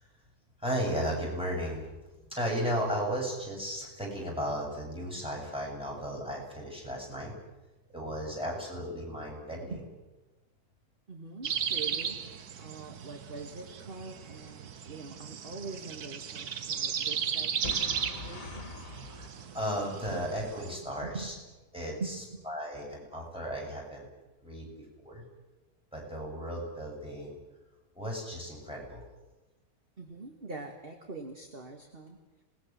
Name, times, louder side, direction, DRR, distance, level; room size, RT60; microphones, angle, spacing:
voice 1, 0.6-1.9 2.3-7.3 7.9-9.8 19.1-21.3 21.7-22.1 22.4-24.1 24.4-25.2 25.9-27.4 27.9-29.0, equal, 5° right, -2 dB, 7.9 m, -35 dB
voice 2, 11.1-18.9 20.1-20.2 21.0-21.3 22.0-22.4 30.0-32.2, right 3 dB, 35° right, 4 dB, 2.1 m, -43 dB
sound 1, 11.4-20.8, right 8 dB, 65° right, 1.6 m, -36 dB
Boom, 17.6-20.5, left 3 dB, 50° left, 2.2 m, -43 dB
26.5 x 20.0 x 7.6 m, 1.1 s
omnidirectional pair, 1.9 m